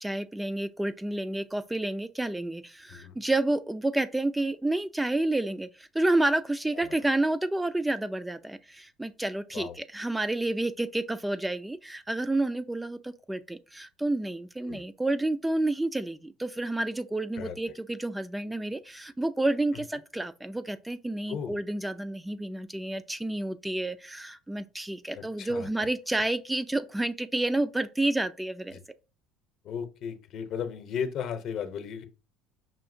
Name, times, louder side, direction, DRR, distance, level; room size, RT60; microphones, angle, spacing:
voice 1, 0.0-28.8, right 2 dB, 10° right, 0.3 m, -30 dB
voice 2, 25.2-25.7 29.6-32.1, left 7 dB, 60° left, 0.8 m, -35 dB
5.5 x 2.7 x 2.6 m
supercardioid pair, 95°, 0 cm